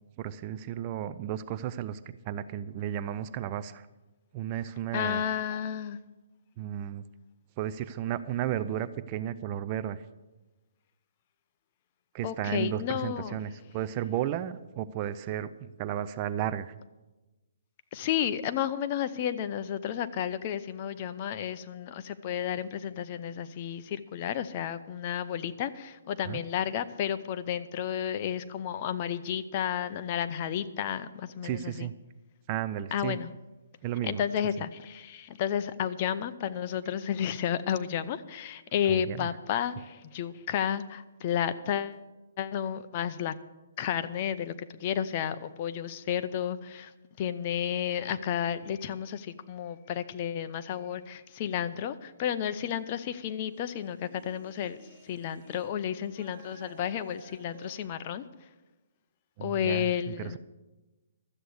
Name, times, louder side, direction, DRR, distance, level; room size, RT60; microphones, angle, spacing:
voice 1, 0.2-2.0 2.3-3.9 4.3-5.2 6.6-7.0 7.6-10.0 12.1-16.7 26.2-26.4 31.4-32.0 32.5-33.2 33.8-34.2 38.9-39.3 59.4-60.4, right 11 dB, 30° right, 14 dB, 0.4 m, -33 dB
voice 2, 4.9-6.0 12.2-13.4 17.9-31.9 32.9-33.3 34.0-42.0 42.4-43.3 43.8-46.9 47.2-54.8 55.0-58.2 59.4-60.4, left 9 dB, 35° left, 12 dB, 0.6 m, -32 dB
sound 1, 52.6-55.7 56.0-57.8, right 3 dB, 55° right, 2.8 m, -54 dB
13.0 x 8.2 x 7.9 m, 1.1 s
hypercardioid pair, 160°, 0 cm